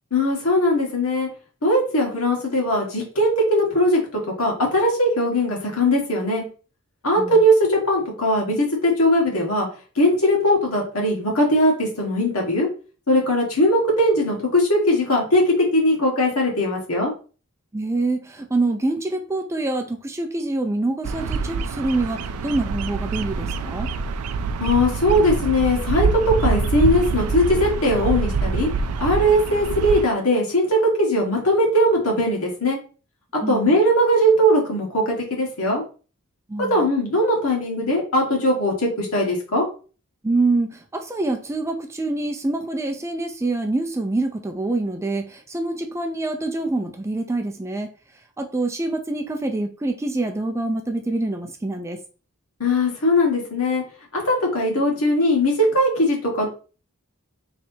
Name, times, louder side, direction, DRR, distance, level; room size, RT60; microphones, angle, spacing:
voice 1, 0.1-1.3 1.6-6.4 7.0-9.7 9.9-12.7 13.1-17.1 24.6-28.7 29.0-32.8 33.5-35.8 36.6-39.6 52.6-53.8 54.1-56.5, equal, 75° left, -1 dB, 1.6 m, -20 dB
voice 2, 17.7-23.9 33.4-33.8 36.5-36.9 40.2-47.9 48.4-52.0, right 2 dB, 15° right, 4 dB, 0.4 m, -25 dB
Bird vocalization bird call bird song, 21.0-30.0, right 4 dB, 85° right, 0.4 m, -25 dB
4.4 x 3.3 x 2.7 m, 0.36 s
head